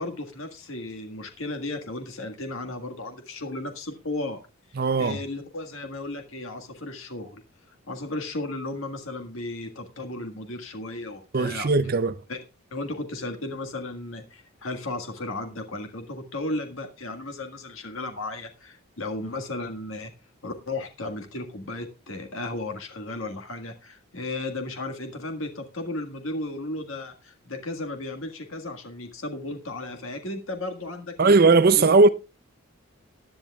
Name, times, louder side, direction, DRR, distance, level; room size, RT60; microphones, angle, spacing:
voice 1, 0.0-4.4 5.0-7.4 7.7-11.7 12.3-12.4 12.7-20.1 20.4-31.4 31.7-31.9, left 2 dB, 65° left, 1.7 m, -34 dB
voice 2, 4.8-5.2 11.3-12.2 31.2-32.1, right 3 dB, 45° right, 0.6 m, -18 dB
19.0 x 10.5 x 2.4 m
head